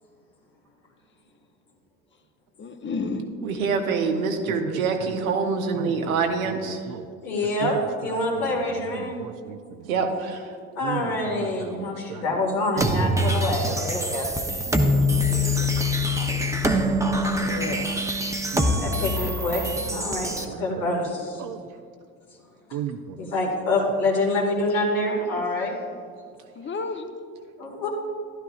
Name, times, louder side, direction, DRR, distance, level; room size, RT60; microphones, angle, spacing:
voice 1, 2.6-3.3 10.9-12.5 17.4-17.9 26.6-27.1, left 4 dB, 30° left, 0.9 m, -34 dB
voice 2, 3.4-6.8 9.8-10.4 15.9-16.0, right 5 dB, 85° right, 1.0 m, -25 dB
voice 3, 5.8-7.1 7.6-7.8 8.1-8.6 8.9-9.6 10.8-12.2 12.8-13.2 13.7-13.8 14.1-15.2 16.6-17.1 17.5-17.7 18.5-20.6 21.4-21.6 22.7-23.3, right 9 dB, 50° right, 0.6 m, -37 dB
voice 4, 7.2-7.7 8.0-9.2 10.8-14.3 18.8-19.6 19.9-21.4 23.2-25.8 27.6-27.9, left 2 dB, 85° left, 1.9 m, -26 dB
sound 1, 12.8-20.4, left 1 dB, 10° right, 0.8 m, -24 dB
12.0 x 11.5 x 2.5 m
hypercardioid pair, 60°, 40 cm